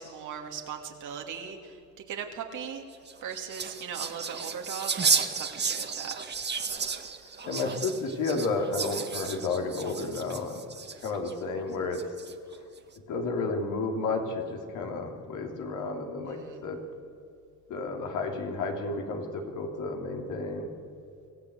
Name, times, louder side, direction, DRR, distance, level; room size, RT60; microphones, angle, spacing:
voice 1, 0.0-1.6 2.1-2.8 3.2-6.1 16.2-16.6, right 7 dB, 80° right, 2 dB, 2.8 m, -38 dB
sound 1, 2.9-11.3 11.9-12.5, right 5 dB, 35° right, 1.6 m, -32 dB
voice 2, 7.4-10.6 11.0-12.0 13.1-16.8 17.7-20.7, left 3 dB, 85° left, 2 dB, 3.2 m, -32 dB
25.0 x 15.0 x 8.2 m, 2.7 s
cardioid pair, 90°, 30 cm